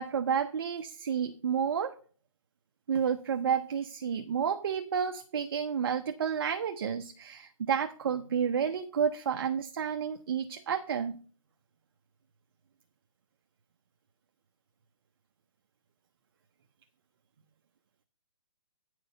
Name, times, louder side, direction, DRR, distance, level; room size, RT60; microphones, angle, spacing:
voice 1, 0.0-1.9 2.9-11.2, right 7 dB, 45° right, 6 dB, 0.7 m, -30 dB
9.6 x 4.8 x 6.6 m, 0.40 s
hypercardioid pair, 165°, 16 cm